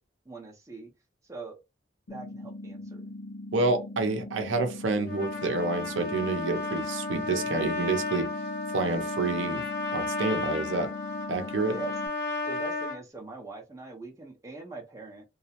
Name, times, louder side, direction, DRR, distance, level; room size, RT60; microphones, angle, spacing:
voice 1, 0.3-0.9 1.2-1.6 2.1-3.0 11.7-11.9 12.4-15.2, right 3 dB, 15° right, 0.5 m, -42 dB
sound 1, 2.1-12.1, left 1 dB, 90° left, 0.4 m, -41 dB
voice 2, 3.5-8.3 8.7-9.6 9.9-10.9 11.3-11.8, right 3 dB, 80° right, 0.6 m, -28 dB
Trumpet, 5.0-13.0, left 3 dB, 60° left, 1.2 m, -33 dB
2.3 x 2.0 x 2.8 m
head